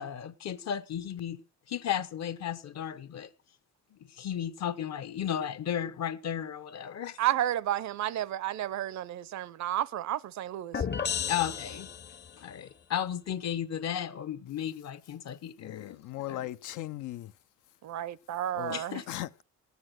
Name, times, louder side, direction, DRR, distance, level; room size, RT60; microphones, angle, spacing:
voice 1, 0.0-1.4 1.7-3.3 3.9-7.2 11.3-11.9 12.4-16.0 16.3-16.5 18.7-19.0, left 9 dB, 60° left, 1.0 m, -34 dB
voice 2, 7.2-10.8 17.8-19.0, right 12 dB, 65° right, 0.6 m, -31 dB
sound 1, 10.7-12.4, left 7 dB, 35° left, 0.8 m, -33 dB
voice 3, 15.6-17.3 18.5-18.8 19.1-19.4, left 14 dB, 80° left, 0.6 m, -38 dB
13.5 x 9.7 x 6.3 m
cardioid pair, 90°, 30 cm